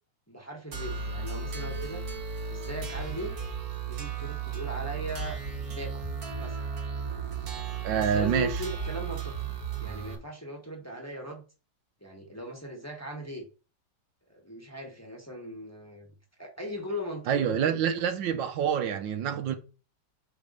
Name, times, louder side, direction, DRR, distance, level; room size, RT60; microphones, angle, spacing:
voice 1, 0.3-2.0 2.5-3.4 3.9-5.4 5.7-6.1 6.4-6.6 7.9-9.3 9.8-11.4 12.0-13.5 14.3-16.1 16.4-18.0, equal, 10° left, 1.2 m, -39 dB
sound 1, 0.7-10.2, right 6 dB, 55° right, 1.8 m, -35 dB
voice 2, 7.8-8.6 17.3-19.6, right 8 dB, 85° right, 1.6 m, -27 dB
5.0 x 4.6 x 5.3 m
omnidirectional pair, 2.0 m